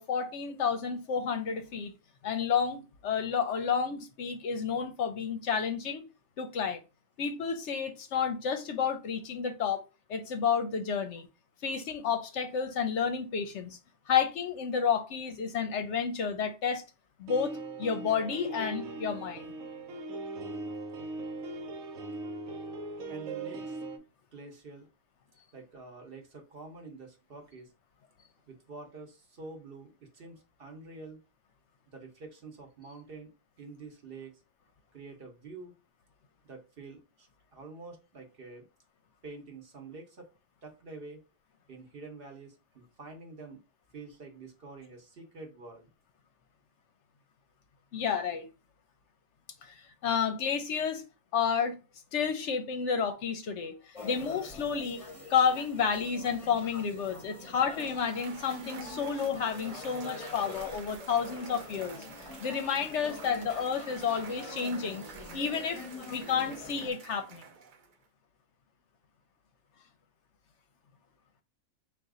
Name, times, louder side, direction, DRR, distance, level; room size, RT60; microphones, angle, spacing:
voice 1, 0.0-1.9 2.2-6.0 6.4-6.8 7.2-9.8 10.1-11.3 11.6-13.8 14.1-16.8 17.2-19.5 47.9-48.5 49.6-51.0 51.3-51.8 52.1-55.0 55.3-65.0 65.3-65.8 66.1-67.4, left 6 dB, 65° left, 0.8 m, -31 dB
sound 1, 17.3-24.0, right 2 dB, 80° right, 1.1 m, -39 dB
voice 2, 23.1-23.8 24.3-24.9 25.5-27.7 28.5-31.2 31.9-33.3 33.6-34.4 34.9-35.7 36.4-38.7 39.2-40.3 40.6-41.2 41.7-43.6 43.9-45.9, right 3 dB, 45° right, 1.0 m, -47 dB
sound 2, 53.9-66.9, left 3 dB, 30° left, 0.7 m, -45 dB
Cheering / Applause / Crowd, 57.6-68.0, right 6 dB, 65° right, 0.5 m, -49 dB
4.0 x 2.5 x 3.6 m
omnidirectional pair, 1.4 m